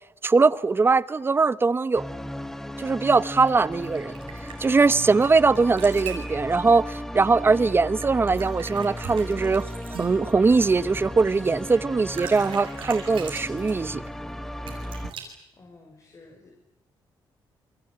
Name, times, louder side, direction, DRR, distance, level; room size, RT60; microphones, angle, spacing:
voice 1, 0.2-2.1 2.8-4.1 4.6-9.7 10.0-14.0, right 4 dB, 25° right, 1.0 m, -21 dB
sound 1, 1.9-15.1, left 1 dB, 5° left, 1.4 m, -36 dB
sound 2, 3.5-5.3 5.5-6.3 8.0-10.6 11.8-11.9 12.0-13.8 14.7-15.2, right 8 dB, 85° right, 7.5 m, -40 dB
voice 2, 15.2-16.5, left 3 dB, 35° left, 6.1 m, -52 dB
29.5 x 23.0 x 8.8 m
cardioid pair, 105°, 9 cm